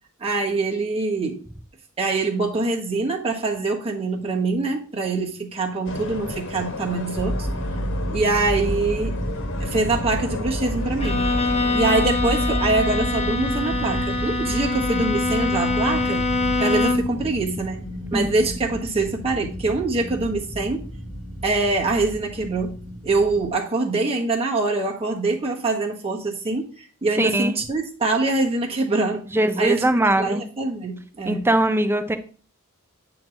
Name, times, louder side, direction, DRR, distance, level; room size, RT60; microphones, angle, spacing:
voice 1, 0.2-1.4 2.0-7.5 8.1-9.2 9.6-11.2 11.7-16.2 16.6-17.8 18.1-20.9 21.4-22.7 23.0-29.3 29.6-29.8 30.2-31.4, right 3 dB, 30° right, 1.3 m, -24 dB
sound 1, 5.8-11.8, left 2 dB, 60° left, 1.3 m, -34 dB
sound 2, 7.2-23.5, equal, 5° left, 1.3 m, -30 dB
Bowed string instrument, 11.0-17.2, left 3 dB, 30° left, 0.8 m, -24 dB
voice 2, 27.2-27.6 29.3-30.4 31.3-32.2, right 1 dB, 10° right, 0.6 m, -21 dB
9.1 x 3.0 x 6.4 m
head